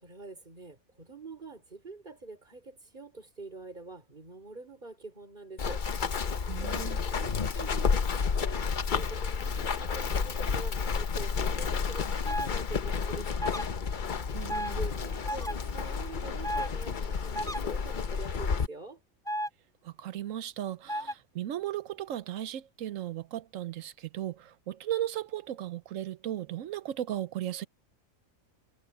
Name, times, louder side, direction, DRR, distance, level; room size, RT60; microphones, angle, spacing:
voice 1, 0.0-5.8 6.6-13.8 14.5-19.0, right 3 dB, 35° right, 5.1 m, -45 dB
Run, 5.6-18.7, left 5 dB, 40° left, 0.9 m, -31 dB
voice 2, 6.5-7.0 14.3-14.8 19.8-27.7, right 12 dB, 70° right, 1.0 m, -36 dB
sound 1, 12.2-12.5 13.4-13.6 14.5-14.7 15.3-15.5 16.4-16.7 17.3-17.6 19.3-19.5 20.9-21.1, equal, 5° left, 3.2 m, -32 dB
omnidirectional pair, 1.4 m